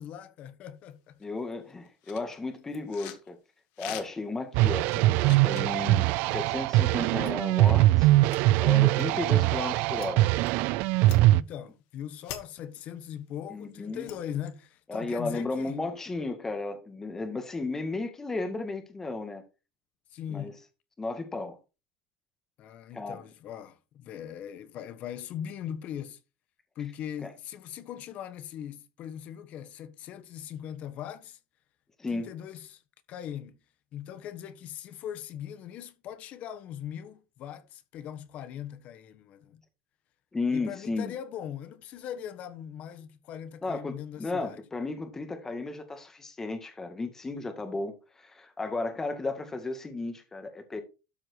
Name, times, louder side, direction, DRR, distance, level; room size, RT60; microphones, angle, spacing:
voice 1, 0.0-1.3 9.2-9.7 11.3-15.8 20.1-20.6 22.6-26.2 26.7-31.4 32.1-32.8 33.1-33.6 33.9-39.6 40.5-44.6, left 9 dB, 45° left, 1.3 m, -40 dB
sound 1, 0.9-1.0 1.2-3.3 3.7-4.4 4.8-5.7 7.2-7.3 7.7-7.8 8.2-8.4 9.0-9.1 9.9-10.1 10.4-10.5 11.0-11.5 12.0-12.4 13.5-14.6, left 12 dB, 70° left, 1.8 m, -44 dB
voice 2, 1.2-3.4 3.8-8.1 8.6-10.3 13.5-14.1 14.9-19.4 20.3-20.5 21.0-21.6 22.9-23.2 27.2-27.3 32.0-32.3 40.3-41.1 43.6-50.8, left 3 dB, 15° left, 2.0 m, -34 dB
sound 2, 4.5-11.4, right 17 dB, 65° right, 0.4 m, -22 dB
13.0 x 4.7 x 4.7 m
cardioid pair, 150°, 3 cm